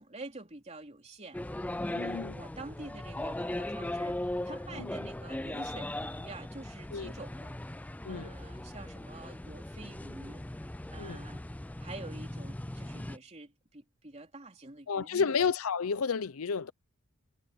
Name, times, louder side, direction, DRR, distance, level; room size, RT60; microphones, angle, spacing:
voice 1, 0.0-1.4 2.0-7.6 8.0-10.4 10.9-11.4 11.8-15.4, right 2 dB, 30° right, 3.3 m, -47 dB
sound 1, 1.3-13.2, left 1 dB, 5° left, 0.3 m, -38 dB
voice 2, 1.9-2.4 4.7-4.9 6.9-7.1 8.0-8.3 11.0-11.2 14.9-16.7, left 5 dB, 75° left, 0.6 m, -31 dB
head